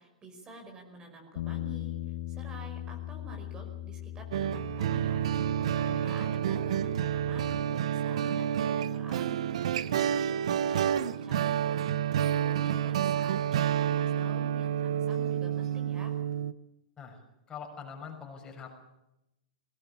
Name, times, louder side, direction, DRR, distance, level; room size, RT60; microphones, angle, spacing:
voice 1, 0.0-9.5 9.8-16.1, right 2 dB, 25° right, 3 dB, 5.3 m, -49 dB
Bass guitar, 1.4-7.6, left 13 dB, 60° left, 1.2 m, -40 dB
sound 1, 4.3-16.5, right 9 dB, 65° right, 0.9 m, -29 dB
voice 2, 17.5-18.7, left 6 dB, 20° left, 2 dB, 6.3 m, -43 dB
21.0 x 19.0 x 8.6 m, 0.90 s
hypercardioid pair, 105°, 4 cm